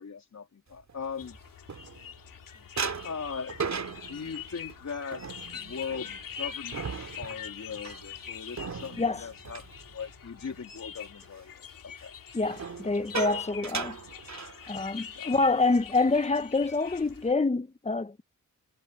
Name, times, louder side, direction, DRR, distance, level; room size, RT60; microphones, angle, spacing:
voice 1, 0.0-1.4 2.6-2.7 3.0-5.3 5.5-12.1 15.2-15.3, left 6 dB, 60° left, 2.9 m, -40 dB
sound 1, 0.9-2.3 2.8-10.6 10.9-11.3 12.4-15.0 15.3-15.5 15.8-16.1 16.6-17.3, right 5 dB, 60° right, 2.4 m, -38 dB
sound 2, 1.2-17.3, left 8 dB, 85° left, 2.4 m, -44 dB
voice 2, 12.3-14.0 14.7-18.2, left 3 dB, 20° left, 1.0 m, -26 dB
cardioid pair, 60°, 32 cm